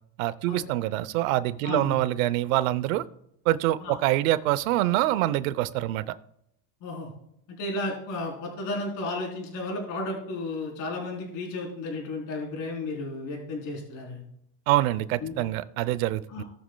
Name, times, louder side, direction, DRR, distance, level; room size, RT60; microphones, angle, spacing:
voice 1, 0.2-3.0 3.5-6.1 14.7-16.4, right 15 dB, 85° right, 14 dB, 0.8 m, -25 dB
voice 2, 1.6-2.0 3.8-4.0 6.8-7.1 7.6-14.2 15.2-15.4 16.3-16.4, left 2 dB, 50° left, -1 dB, 3.8 m, -33 dB
18.5 x 6.2 x 2.3 m, 0.75 s
supercardioid pair, 140°, 40 cm